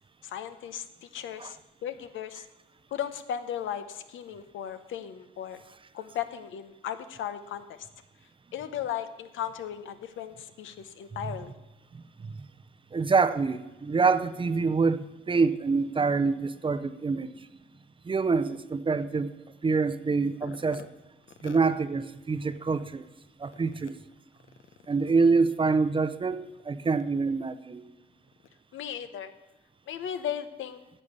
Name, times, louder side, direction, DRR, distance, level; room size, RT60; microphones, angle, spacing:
voice 1, 0.2-2.5 2.9-5.6 5.9-7.8 8.5-11.5 20.4-20.9 21.4-21.6 28.7-29.3 29.9-30.8, left 9 dB, 80° left, 10 dB, 0.9 m, -36 dB
voice 2, 12.9-17.3 18.0-19.3 19.6-20.8 21.4-23.1 23.4-24.0 24.9-27.8, right 4 dB, 25° right, 12 dB, 0.6 m, -26 dB
11.0 x 7.2 x 6.7 m, 1.1 s
cardioid pair, 90°, 20 cm